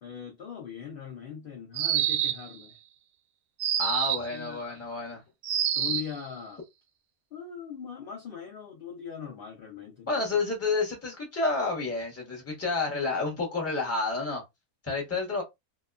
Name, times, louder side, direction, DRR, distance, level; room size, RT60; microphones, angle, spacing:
voice 1, 0.0-2.8 4.3-4.8 5.8-6.6 7.3-10.1, left 8 dB, 60° left, 0.6 m, -40 dB
sound 1, 1.7-2.5 3.6-4.3 5.4-6.2, right 10 dB, 70° right, 0.9 m, -27 dB
voice 2, 3.8-5.2 10.1-14.4 14.8-15.4, left 3 dB, 15° left, 0.7 m, -30 dB
2.9 x 2.2 x 2.3 m
omnidirectional pair, 1.5 m